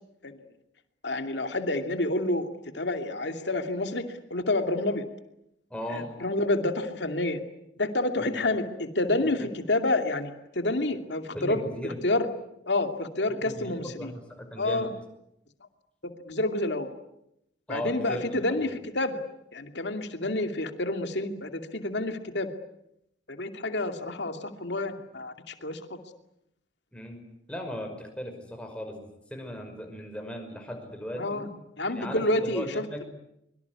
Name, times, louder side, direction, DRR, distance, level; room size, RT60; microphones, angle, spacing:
voice 1, 1.0-2.5 2.7-4.0 4.3-5.0 5.9-7.4 7.8-12.3 12.7-14.1 14.6-14.9 16.0-16.9 17.7-19.2 19.5-22.5 23.3-26.0 31.1-31.5 31.8-33.0, left 2 dB, 65° left, 7 dB, 2.6 m, -29 dB
voice 2, 5.7-6.1 8.3-8.4 9.2-9.3 11.3-12.0 13.3-14.9 17.7-18.3 18.6-18.7 26.9-27.2 27.5-29.1 29.3-31.4 31.9-33.0, left 1 dB, 5° left, 3 dB, 5.6 m, -37 dB
24.0 x 23.5 x 9.7 m, 0.81 s
head